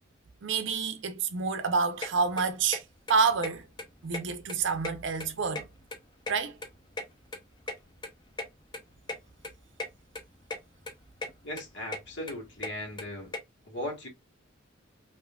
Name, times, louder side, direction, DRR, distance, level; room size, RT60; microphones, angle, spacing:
voice 1, 0.4-2.8 3.1-3.7 4.0-5.7 6.3-6.6, right 5 dB, 60° right, 0.5 m, -28 dB
sound 1, 2.0-2.1 2.4-2.8 3.1-3.2 3.4-3.5 3.8-4.5 4.8-6.0 6.3-7.8 8.0-8.1 8.4-8.5 8.7-8.8 9.1-9.2 9.4-9.9 10.1-10.6 10.8-11.3 11.6-13.4, left 2 dB, 20° left, 0.6 m, -36 dB
voice 2, 11.4-13.3 13.6-14.1, left 1 dB, 60° left, 1.4 m, -38 dB
3.5 x 2.6 x 2.2 m
head